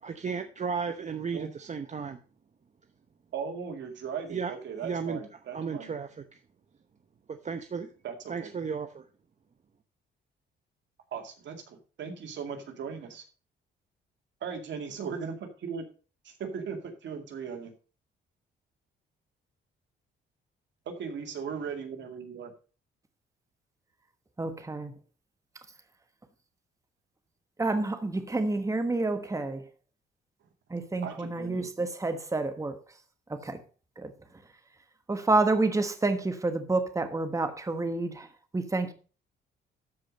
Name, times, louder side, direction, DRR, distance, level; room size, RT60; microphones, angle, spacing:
voice 1, 0.0-2.2 4.3-4.5 4.8-5.2 5.5-6.4 7.3-7.9 8.3-9.0, right 5 dB, 35° right, 8 dB, 0.9 m, -34 dB
voice 2, 3.3-5.9 8.0-8.5 11.1-13.2 14.4-15.3 15.6-15.8 16.2-17.7 21.0-22.5 31.0-31.7, right 6 dB, 65° right, 5 dB, 2.3 m, -38 dB
voice 3, 24.4-24.9 27.6-29.7 30.7-32.8 33.3-33.6 34.0-34.1 35.1-38.3 38.5-38.9, right 2 dB, 15° right, 8 dB, 1.3 m, -29 dB
13.0 x 5.0 x 5.2 m, 0.37 s
cardioid pair, 90°, 20 cm